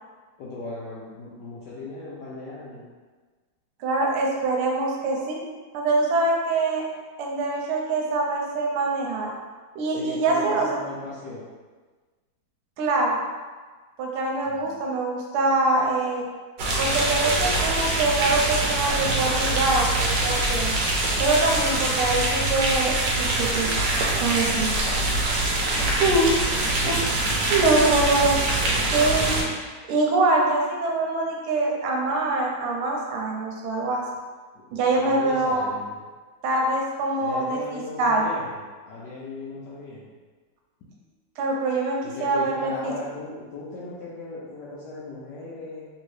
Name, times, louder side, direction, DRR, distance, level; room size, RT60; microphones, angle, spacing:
voice 1, 0.4-2.8 10.0-11.5 14.5-14.7 21.5-22.0 24.5-26.3 26.7-27.2 34.5-34.6 34.9-36.0 37.2-40.1 42.0-45.9, left 3 dB, 75° left, -6 dB, 1.0 m, -38 dB
voice 2, 3.8-5.4 5.7-6.8 7.2-9.3 9.7-10.7 12.8-13.2 14.0-16.2 16.8-19.9 20.2-20.7 21.2-23.7 24.2-24.7 26.0-26.3 26.9-27.0 27.5-28.3 28.9-29.4 29.9-34.0 34.7-35.7 36.4-38.3 41.4-42.9, right 2 dB, 90° right, -1 dB, 1.5 m, -24 dB
sound 1, 16.6-29.4, right 2 dB, 70° right, 1.1 m, -24 dB
3.4 x 2.7 x 3.1 m, 1.4 s
omnidirectional pair, 2.3 m